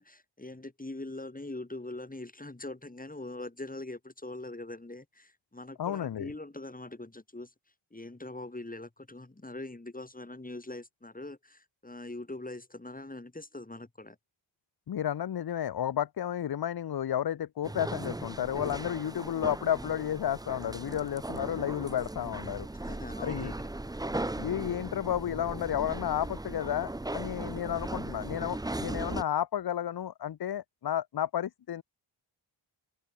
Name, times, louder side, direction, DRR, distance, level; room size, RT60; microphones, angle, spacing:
voice 1, 0.0-7.5 7.9-14.2 22.8-23.7, left 2 dB, 15° left, 3.1 m, -42 dB
voice 2, 5.8-6.3 14.9-22.7 23.2-23.5 24.3-31.8, left 10 dB, 50° left, 0.7 m, -32 dB
sound 1, 17.6-29.2, right 2 dB, 10° right, 0.7 m, -38 dB
open air
cardioid pair, 75°, 49 cm